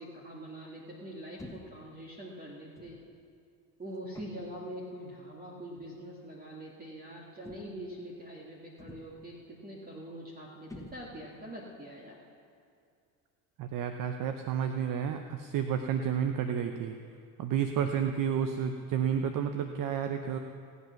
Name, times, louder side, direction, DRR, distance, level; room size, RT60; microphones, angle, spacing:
voice 1, 0.0-3.0 3.8-12.2, right 1 dB, 20° right, -3 dB, 2.0 m, -44 dB
sound 1, 1.4-1.9 2.8-3.1 4.1-4.6 5.7-6.0 7.4-7.9 8.8-9.3 10.7-11.4, left 2 dB, 5° left, 1.3 m, -49 dB
voice 2, 13.6-17.0 17.4-20.4, right 8 dB, 50° right, 7 dB, 0.8 m, -31 dB
18.0 x 8.3 x 5.9 m, 2.4 s
supercardioid pair, 85°, 44 cm